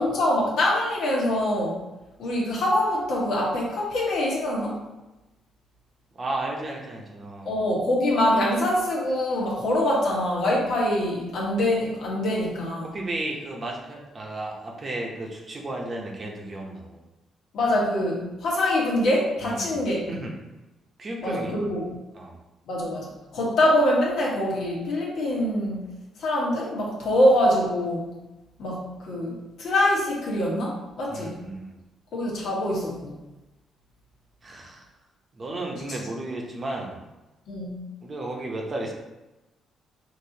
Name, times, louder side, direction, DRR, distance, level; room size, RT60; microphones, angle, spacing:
voice 1, 0.0-1.8 2.2-4.8 7.4-12.9 17.5-20.1 21.2-21.8 22.7-25.8 26.2-28.1 28.6-31.4 32.1-33.1 37.5-37.8, left 1 dB, 70° left, -4 dB, 1.4 m, -24 dB
voice 2, 6.1-7.5 12.8-17.0 19.4-19.8 20.1-20.4 21.0-21.6 22.1-22.4 31.1-31.7 34.4-34.9 35.3-37.0 38.0-38.9, right 2 dB, 35° right, 0 dB, 0.9 m, -33 dB
5.2 x 2.9 x 2.8 m, 1.0 s
cardioid pair, 90°, 0 cm